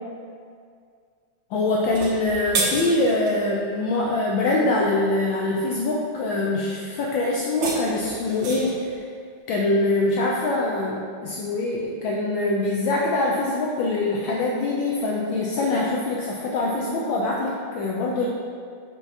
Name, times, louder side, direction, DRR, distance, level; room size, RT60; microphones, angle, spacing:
voice 1, 1.5-9.1 9.5-18.3, left 2 dB, 75° left, -3 dB, 1.3 m, -24 dB
sound 1, 1.8-3.4 7.3-8.8, right 3 dB, 65° right, 1.7 m, -29 dB
5.3 x 4.6 x 5.6 m, 2.2 s
omnidirectional pair, 2.4 m